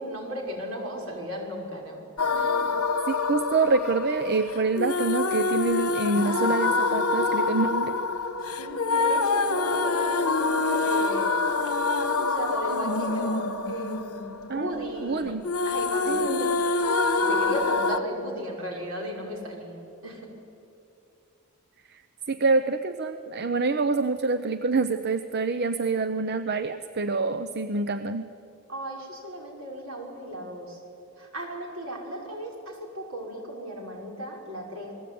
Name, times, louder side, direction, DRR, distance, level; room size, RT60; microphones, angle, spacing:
voice 1, 0.0-2.0 2.3-2.7 8.6-15.4 15.6-20.3 28.7-30.8 31.2-34.9, equal, 70° right, 0 dB, 6.0 m, -36 dB
sound 1, 2.2-15.1 15.4-18.0, left 3 dB, 80° left, 1.5 m, -26 dB
voice 2, 3.1-8.0 14.5-15.5 16.1-16.5 21.9-22.0 22.3-28.3, right 3 dB, 45° right, 10 dB, 0.7 m, -26 dB
28.5 x 20.0 x 9.5 m, 2.6 s
head